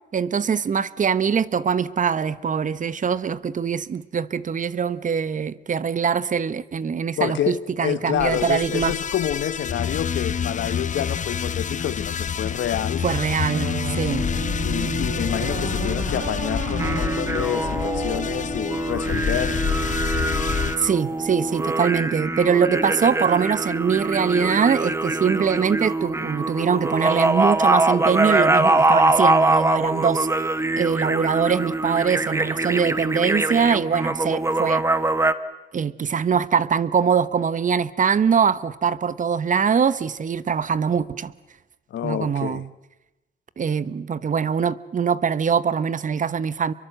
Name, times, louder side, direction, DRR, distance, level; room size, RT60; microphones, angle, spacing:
voice 1, 0.1-8.9 13.0-14.3 20.8-30.4 30.8-34.8 35.7-41.3 42.0-42.7 43.6-46.7, right 6 dB, 40° right, 1.0 m, -23 dB
voice 2, 7.2-13.1 14.6-19.6 41.9-42.6, left 11 dB, 70° left, 1.1 m, -28 dB
sound 1, 8.1-20.8, left 7 dB, 40° left, 0.8 m, -27 dB
sound 2, 13.5-18.7, right 4 dB, 85° right, 4.5 m, -32 dB
sound 3, 16.8-35.3, right 2 dB, 15° right, 1.2 m, -23 dB
26.5 x 23.0 x 7.9 m
cardioid pair, 90°, 20 cm